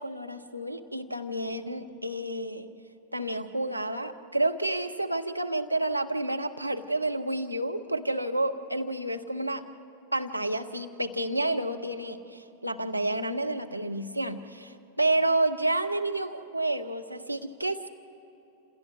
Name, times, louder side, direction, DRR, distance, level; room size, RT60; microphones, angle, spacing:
voice 1, 0.0-2.7 3.1-9.6 10.1-17.9, right 2 dB, 90° right, 5 dB, 0.9 m, -30 dB
28.5 x 27.5 x 4.7 m, 2.9 s
figure-of-eight pair, 90°, 0 cm